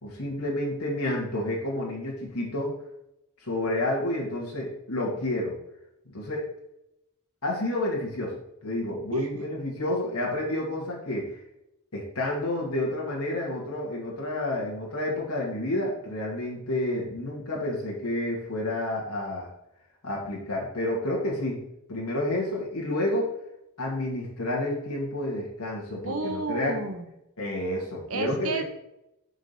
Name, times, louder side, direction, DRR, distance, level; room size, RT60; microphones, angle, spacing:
voice 1, 0.0-2.8 3.4-5.6 6.1-6.5 7.4-11.4 11.9-19.5 20.0-21.6 21.9-23.3 23.8-26.7 27.4-28.6, left 1 dB, 85° left, -3 dB, 2.3 m, -30 dB
voice 2, 26.0-27.1 28.1-28.6, right 3 dB, 70° right, 6 dB, 1.1 m, -30 dB
6.3 x 5.0 x 5.7 m, 0.84 s
head